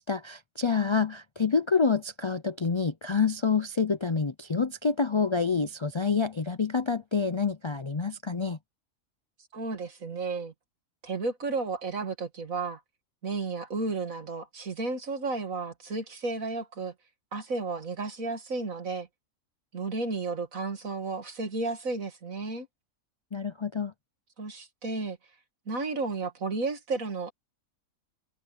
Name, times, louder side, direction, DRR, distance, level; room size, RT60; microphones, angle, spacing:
voice 1, 0.0-8.6 23.3-23.9, left 5 dB, 45° left, 0.4 m, -27 dB
voice 2, 9.5-10.5 11.0-12.8 13.2-16.9 17.3-19.1 19.7-22.7 24.4-25.2 25.7-27.3, right 3 dB, 80° right, 2.6 m, -33 dB
omnidirectional pair, 1.4 m